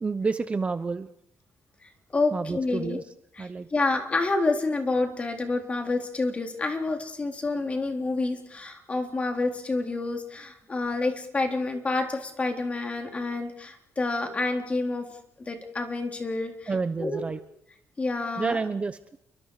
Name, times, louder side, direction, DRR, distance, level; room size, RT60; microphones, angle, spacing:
voice 1, 0.0-1.1 2.3-3.0 3.4-3.7 16.7-17.4 18.4-19.2, right 4 dB, 25° right, 11 dB, 0.9 m, -29 dB
voice 2, 2.1-3.0 3.4-15.1 15.5-16.7 17.0-17.3 18.0-18.6, left 3 dB, 25° left, 4 dB, 3.7 m, -28 dB
29.0 x 24.0 x 4.9 m, 0.75 s
cardioid pair, 145°, 5 cm